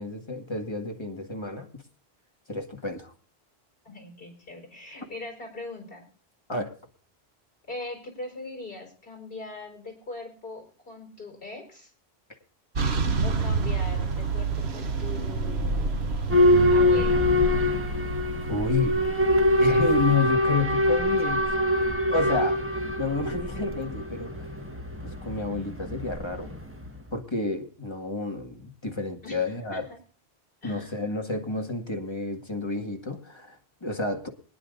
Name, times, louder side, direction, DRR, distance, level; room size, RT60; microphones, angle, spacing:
voice 1, 0.0-1.8 2.5-3.1 6.5-6.7 18.5-19.0 19.6-21.4 21.7-24.5 25.0-26.5 27.1-29.8 30.6-34.3, left 3 dB, 25° left, 3 dB, 2.0 m, -30 dB
voice 2, 3.8-6.0 7.7-11.9 13.2-15.9 16.7-17.2 29.2-29.4 29.7-30.0 30.6-31.1, left 2 dB, 60° left, 3 dB, 5.1 m, -40 dB
sound 1, 12.8-20.1, right 4 dB, 80° right, 1.3 m, -29 dB
Boat Water vehicle / Alarm, 16.3-27.0, left 1 dB, 10° right, 1.7 m, -24 dB
24.0 x 10.0 x 2.6 m, 0.40 s
omnidirectional pair, 1.1 m